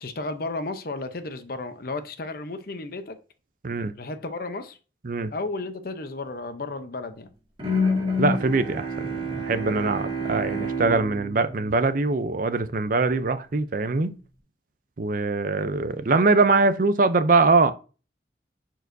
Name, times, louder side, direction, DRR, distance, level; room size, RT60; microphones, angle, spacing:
voice 1, 0.0-3.2 4.0-4.8 5.3-7.3, left 2 dB, 55° left, 0.8 m, -33 dB
Bowed string instrument, 7.6-12.7, left 1 dB, 30° right, 2.1 m, -29 dB
voice 2, 8.2-14.1 15.0-17.7, right 3 dB, 50° right, 0.5 m, -22 dB
10.5 x 4.6 x 2.7 m
head